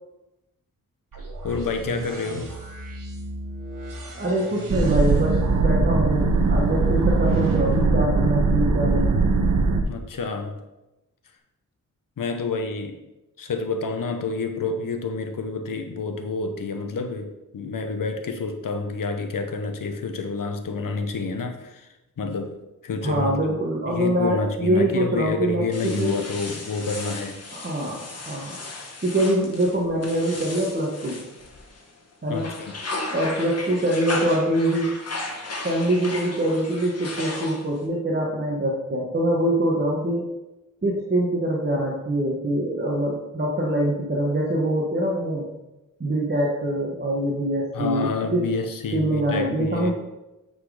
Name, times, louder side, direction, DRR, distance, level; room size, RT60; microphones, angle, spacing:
sound 1, 1.1-9.0, right 1 dB, 85° right, 1.6 m, -38 dB
voice 1, 1.4-2.5 9.9-10.6 12.2-13.0 13.4-21.9 22.2-22.6 22.8-23.6 23.8-27.4 32.3-32.7 47.7-49.9, left 4 dB, 80° left, 5 dB, 1.0 m, -28 dB
voice 2, 4.2-9.1 23.0-26.1 27.5-28.6 29.0-31.2 32.2-32.5 33.1-34.9 35.6-40.2 40.8-45.5 46.0-48.4 48.9-49.9, right 1 dB, 35° right, -3 dB, 1.2 m, -24 dB
sound 2, 4.7-9.8, right 3 dB, 70° right, 1.0 m, -20 dB
sound 3, 25.7-31.9 32.3-37.9, left 2 dB, 50° left, 1.3 m, -35 dB
8.6 x 4.1 x 4.9 m, 0.98 s
wide cardioid pair, 135°, 32 cm